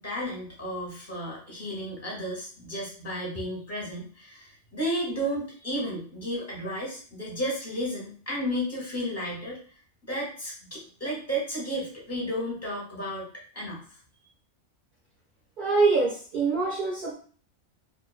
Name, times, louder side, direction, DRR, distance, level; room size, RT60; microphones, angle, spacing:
voice 1, 0.0-9.6 10.1-13.3 13.5-14.0, equal, 15° left, -4 dB, 0.7 m, -33 dB
voice 2, 15.6-17.1, right 4 dB, 55° right, -4 dB, 0.6 m, -24 dB
2.4 x 2.2 x 2.3 m, 0.42 s
omnidirectional pair, 1.3 m